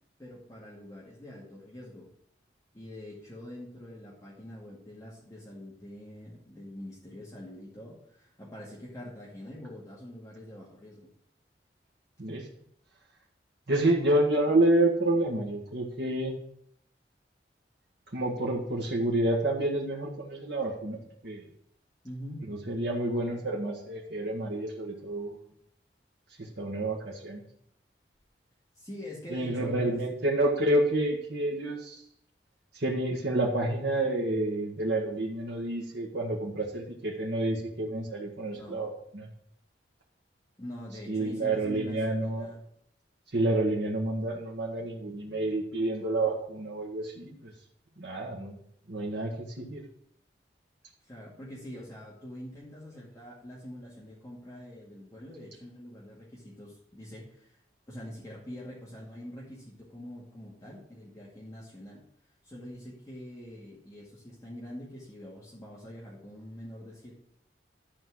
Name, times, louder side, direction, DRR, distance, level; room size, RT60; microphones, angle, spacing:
voice 1, 0.2-2.1 2.7-11.1 22.0-22.5 28.7-30.0 38.5-38.8 40.6-42.6 51.0-57.6 57.9-62.0 62.4-67.1, left 1 dB, 20° left, -6 dB, 2.3 m, -45 dB
voice 2, 13.7-16.3 18.1-21.4 22.5-25.4 26.4-27.4 29.3-32.0 32.7-39.3 41.1-42.5 43.3-47.5 48.0-48.6 48.9-49.8, right 1 dB, 70° right, -3 dB, 1.6 m, -29 dB
12.0 x 4.5 x 7.8 m, 0.69 s
head